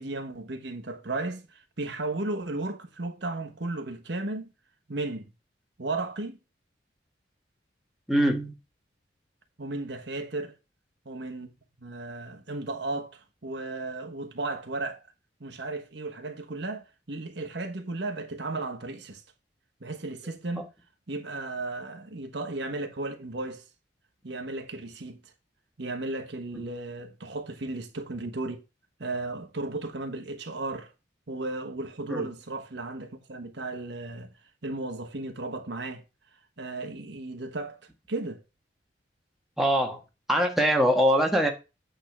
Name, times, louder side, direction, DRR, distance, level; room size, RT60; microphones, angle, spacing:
voice 1, 0.0-4.5 4.9-5.3 5.8-6.4 9.6-10.5 11.0-11.5 11.8-15.0 15.4-19.2 19.8-20.7 21.1-23.6 24.2-25.2 25.8-28.6 29.0-30.9 31.3-34.3 34.6-36.0 36.6-37.8 38.1-38.4, right 2 dB, 65° right, 1.3 m, -34 dB
voice 2, 8.1-8.5 32.1-32.3 39.6-40.0 40.3-41.5, equal, ahead, 1.3 m, -22 dB
8.8 x 3.9 x 5.9 m
head